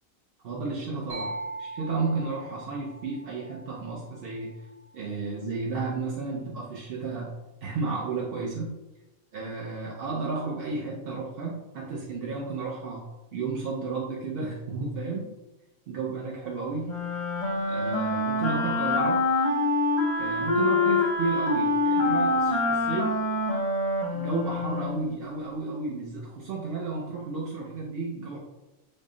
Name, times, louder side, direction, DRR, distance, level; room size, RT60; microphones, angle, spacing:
voice 1, 0.4-1.3 1.6-4.5 4.9-7.3 7.6-8.8 9.3-13.0 13.3-15.3 15.9-16.9 17.7-19.3 20.2-23.2 24.1-28.4, right 4 dB, 65° right, -3 dB, 0.6 m, -32 dB
sound 1, 1.1-4.8, right 2 dB, 85° right, 1.4 m, -41 dB
Wind instrument woodwind instrument, 16.8-25.0, left 2 dB, 45° left, 0.5 m, -25 dB
3.7 x 2.0 x 3.7 m, 1.0 s
omnidirectional pair, 1.5 m